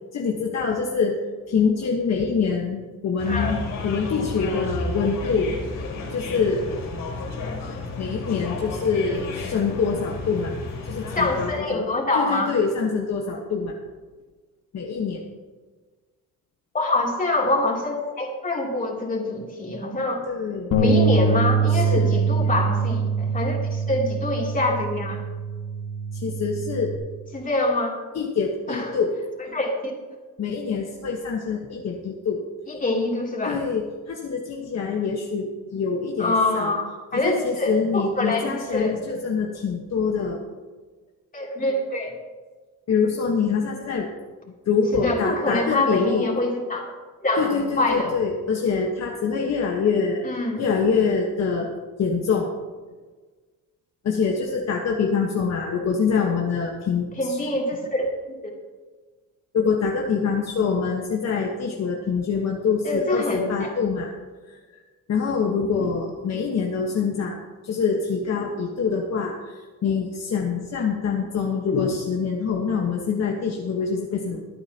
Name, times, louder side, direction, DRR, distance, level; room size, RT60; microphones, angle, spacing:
voice 1, 0.1-1.2 1.5-5.5 6.1-6.6 7.6-10.5 10.8-11.8 12.1-13.7 14.7-15.2 20.3-20.7 21.7-22.5 26.1-26.9 28.1-29.1 30.4-32.4 33.5-36.7 37.1-40.4 42.9-44.1 44.7-46.3 47.4-50.3 50.6-51.7 52.0-52.6 54.0-57.4 59.5-64.1 64.4-64.8 65.1-67.4 67.6-74.4, left 5 dB, 50° left, 0 dB, 1.4 m, -25 dB
sound 1, 3.2-11.5, left 3 dB, 85° left, 4.5 m, -32 dB
voice 2, 11.1-12.5 16.7-20.2 20.8-25.2 27.3-28.0 28.7-29.0 29.5-29.7 32.7-33.6 36.2-39.0 41.3-42.1 44.9-46.9 47.2-48.1 50.2-50.6 57.2-58.1 62.8-63.7, left 2 dB, 25° left, -2 dB, 3.1 m, -25 dB
Bass guitar, 20.7-27.0, right 4 dB, 70° left, 2.0 m, -23 dB
24.0 x 8.8 x 2.9 m, 1.4 s
cardioid pair, 125°, 33 cm